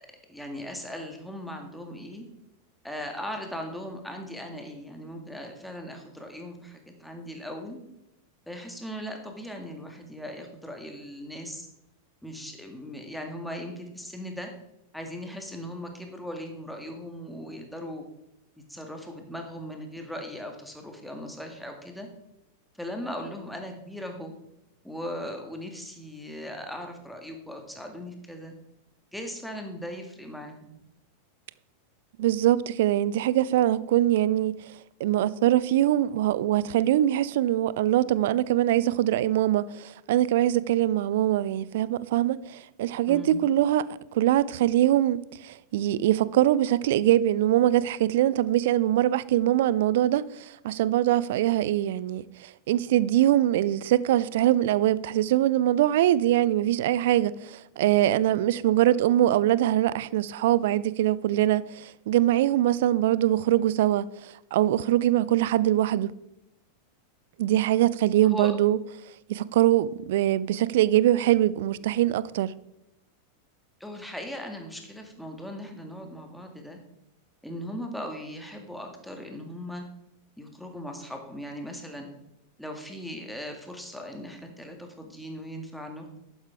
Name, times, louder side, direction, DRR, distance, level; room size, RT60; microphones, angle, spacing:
voice 1, 0.3-2.3 2.8-7.8 8.5-11.7 12.2-14.5 14.9-18.0 18.7-22.1 22.7-24.3 24.8-28.5 29.1-30.7 43.1-43.4 68.2-68.5 73.8-76.8 77.4-79.8 80.4-82.1 82.6-86.2, equal, ahead, 1.9 m, -38 dB
voice 2, 32.2-34.6 35.0-43.8 44.1-66.1 67.4-68.8 69.3-72.5, right 13 dB, 55° right, 0.4 m, -23 dB
11.5 x 9.4 x 3.6 m
figure-of-eight pair, 90°, 0 cm